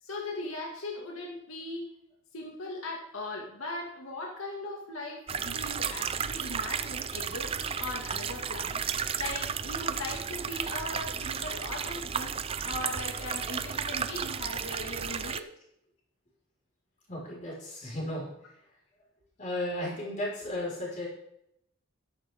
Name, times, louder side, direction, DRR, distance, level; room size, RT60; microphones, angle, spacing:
voice 1, 0.0-1.9 2.3-15.5, left 2 dB, 85° left, -1 dB, 2.1 m, -39 dB
sound 1, 5.3-15.4, right 7 dB, 25° right, 0.4 m, -33 dB
voice 2, 17.1-18.6 19.4-21.1, left 1 dB, 35° left, -4 dB, 5.2 m, -35 dB
12.0 x 11.5 x 3.7 m, 0.77 s
head